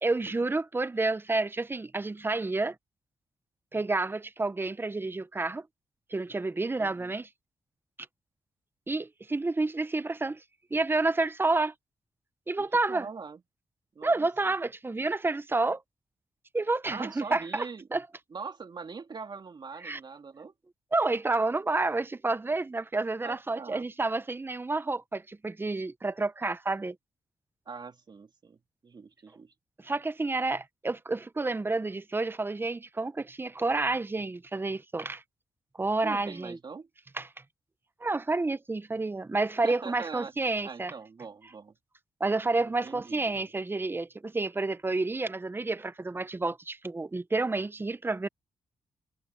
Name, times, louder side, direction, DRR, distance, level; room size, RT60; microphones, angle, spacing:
voice 1, 0.0-2.8 3.7-5.7 6.1-7.3 8.9-10.4 10.7-11.7 12.5-13.1 14.0-15.8 16.5-17.7 17.9-18.0 19.8-20.0 20.9-27.0 29.8-35.2 35.8-36.6 37.2-37.3 38.0-40.9 42.2-48.3, right 3 dB, 20° right, 0.8 m, -29 dB
voice 2, 6.8-7.2 12.6-13.4 13.9-14.3 16.9-17.9 18.3-20.5 23.2-23.9 27.6-29.5 36.0-36.9 39.6-41.8 42.6-43.5, right 5 dB, 50° right, 3.3 m, -42 dB
cardioid pair, 75°, 10 cm